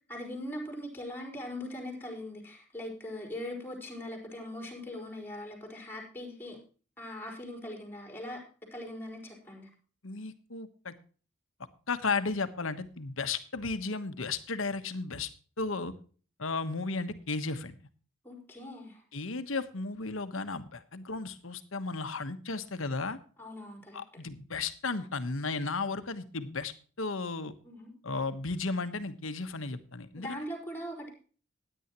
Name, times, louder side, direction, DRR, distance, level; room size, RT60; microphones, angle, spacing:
voice 1, 0.1-6.6 7.0-8.4 8.7-9.7 18.2-19.0 23.4-24.0 27.6-27.9 30.1-31.1, left 1 dB, 10° left, 2 dB, 4.7 m, -41 dB
voice 2, 10.0-10.9 11.9-15.3 15.6-15.9 16.4-17.7 19.1-23.2 23.9-27.5 28.0-30.4, left 3 dB, 75° left, 10 dB, 1.2 m, -34 dB
16.5 x 10.0 x 3.0 m, 0.39 s
head